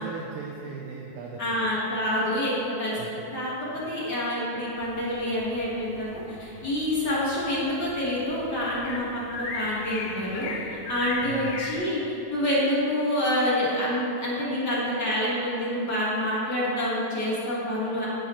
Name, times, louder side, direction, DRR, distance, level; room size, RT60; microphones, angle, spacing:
voice 1, 0.0-1.6 2.9-3.1 3.3-3.4 11.2-11.6, right 5 dB, 90° right, -1 dB, 1.6 m, -38 dB
voice 2, 1.4-3.0 3.3-12.0 12.3-18.1, left 1 dB, 50° left, -7 dB, 1.2 m, -27 dB
sound 1, 4.8-11.8, left 4 dB, 80° left, 1.6 m, -38 dB
11.5 x 10.0 x 3.1 m, 2.9 s
omnidirectional pair, 4.4 m